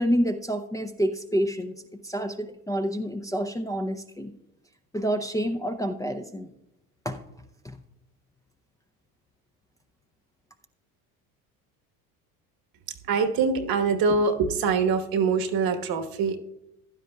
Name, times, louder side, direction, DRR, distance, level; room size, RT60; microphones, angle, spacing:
voice 1, 0.0-4.3 4.9-6.5 7.0-7.2 7.6-7.8, equal, 10° left, 3 dB, 0.6 m, -28 dB
voice 2, 13.1-16.4, right 5 dB, 50° right, 7 dB, 1.3 m, -24 dB
15.5 x 11.5 x 2.3 m, 0.88 s
hypercardioid pair, 75°, 45 cm